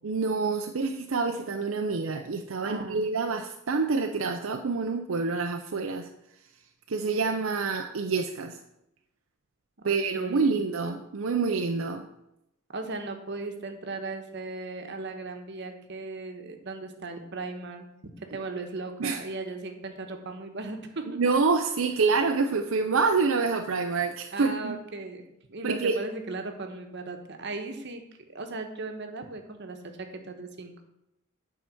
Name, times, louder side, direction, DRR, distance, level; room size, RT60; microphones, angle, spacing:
voice 1, 0.0-6.1 6.9-8.6 9.8-12.0 19.0-19.2 21.2-24.8 25.6-26.0, right 4 dB, 75° right, 5 dB, 0.6 m, -27 dB
voice 2, 2.6-3.0 9.8-10.6 12.7-17.9 18.3-21.1 24.3-25.2 25.5-28.0 28.3-30.8, right 3 dB, 60° right, 5 dB, 1.2 m, -37 dB
8.9 x 4.8 x 7.0 m, 0.87 s
head